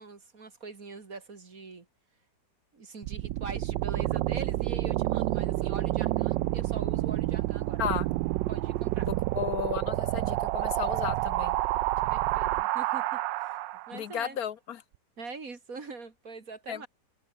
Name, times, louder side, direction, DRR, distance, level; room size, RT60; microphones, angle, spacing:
voice 1, 0.0-1.9 2.7-7.9 8.5-9.1 12.1-13.6 13.9-14.4 15.2-16.9, right 4 dB, 50° right, 2.9 m, -43 dB
sound 1, 3.0-14.0, right 16 dB, 80° right, 1.3 m, -29 dB
voice 2, 9.1-11.6 13.9-14.8 16.7-16.9, left 9 dB, 60° left, 1.2 m, -34 dB
omnidirectional pair, 2.0 m